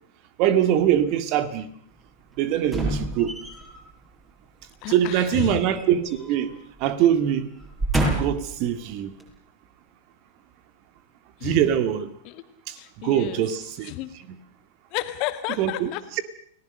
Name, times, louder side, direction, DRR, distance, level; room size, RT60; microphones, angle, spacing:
voice 1, 0.4-1.7 2.4-3.3 4.9-6.5 6.8-7.5 8.1-9.1 11.4-12.1 13.0-13.9 15.6-15.9, right 10 dB, 45° right, 2.0 m, -22 dB
sound 1, 2.6-3.8 5.4-6.5 6.8-7.0 7.6-8.5 9.2-9.3, right 2 dB, 10° right, 7.3 m, -28 dB
voice 2, 4.8-5.6 11.4-11.7 12.2-12.4 12.7-13.4 13.8-14.1 14.9-16.2, left 14 dB, 40° left, 2.1 m, -32 dB
30.0 x 19.0 x 6.5 m
figure-of-eight pair, 90°, 0 cm